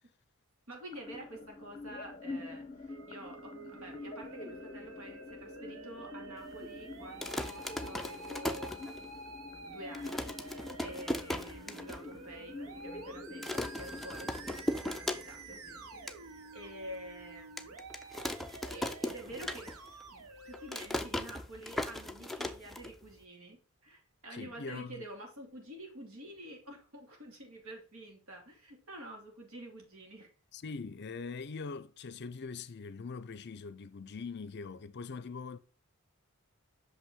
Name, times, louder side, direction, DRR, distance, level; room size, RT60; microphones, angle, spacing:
voice 1, 0.7-8.8 9.7-10.4 10.8-17.8 18.7-19.8 20.1-23.6 23.8-30.3, right 1 dB, 70° right, 2.7 m, -48 dB
sound 1, 0.9-16.9, left 2 dB, 25° left, 1.0 m, -47 dB
Musical instrument, 2.9-20.9, right 3 dB, 85° right, 1.1 m, -50 dB
sound 2, 7.0-9.3 9.7-9.8 9.9-12.0 12.4-12.5 12.7-13.0 13.4-15.6 15.9-16.2 16.7-16.8 17.6-20.0 20.3-23.2, left 1 dB, ahead, 0.5 m, -38 dB
voice 2, 24.3-25.1 30.5-35.6, left 4 dB, 50° left, 0.5 m, -42 dB
6.1 x 5.6 x 3.7 m
head